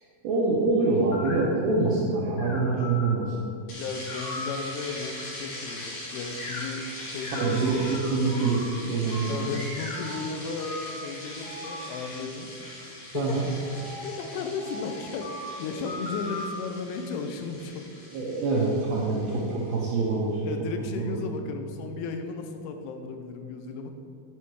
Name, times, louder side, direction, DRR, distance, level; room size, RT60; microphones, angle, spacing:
voice 1, 0.2-3.4 7.4-9.5 13.1-13.5 18.1-20.5 21.0-21.3, right 3 dB, 75° right, -4 dB, 2.6 m, -25 dB
sound 1, 0.8-3.0 3.9-4.7 5.3-6.0 6.4-6.6 7.2-8.7 9.1-10.2 10.6-11.0 11.4-11.9 13.3-16.5, left 2 dB, 70° left, 4.1 m, -39 dB
voice 2, 3.7-7.8 9.3-12.5 12.8-13.4 14.0-17.9 20.4-23.9, left 4 dB, 85° left, 5 dB, 3.1 m, -35 dB
sound 2, 3.7-20.0, left 1 dB, 50° left, 2.6 m, -41 dB
8.9 x 5.7 x 4.7 m, 2.6 s
omnidirectional pair, 5.4 m